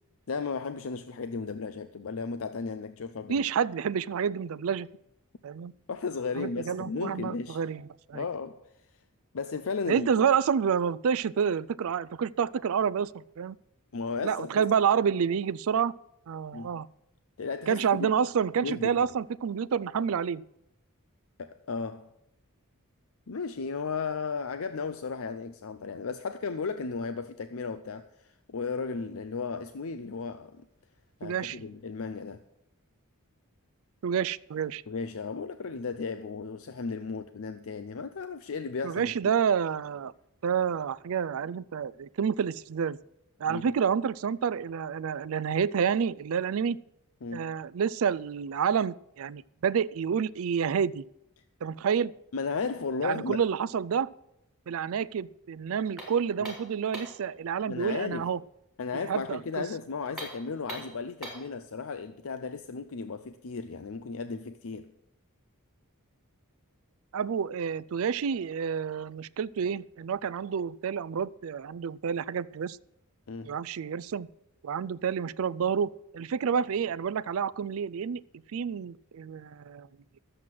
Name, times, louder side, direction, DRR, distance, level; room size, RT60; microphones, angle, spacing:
voice 1, 0.3-3.4 5.9-7.6 8.1-8.6 9.3-10.1 13.9-14.6 16.5-16.7 17.4-18.1 18.6-19.1 21.4-22.1 23.3-30.6 31.2-32.4 34.9-39.1 43.5-43.8 47.2-47.5 52.3-53.4 57.7-58.3 58.8-64.9 73.3-73.6, left 4 dB, 65° left, 0.6 m, -35 dB
voice 2, 3.3-4.9 5.4-5.7 6.4-7.8 8.1-8.3 9.9-13.6 14.2-15.9 16.3-16.9 17.7-20.4 31.2-31.6 34.0-34.8 38.8-40.1 40.4-43.0 43.4-46.8 47.3-51.0 51.6-52.1 53.0-54.1 54.7-58.4 58.9-59.6 67.1-72.8 73.5-74.3 74.6-78.2 78.5-79.9, right 7 dB, 65° right, 0.4 m, -29 dB
sound 1, 56.0-57.3 60.1-61.5, right 1 dB, ahead, 4.0 m, -42 dB
12.0 x 7.8 x 7.6 m
head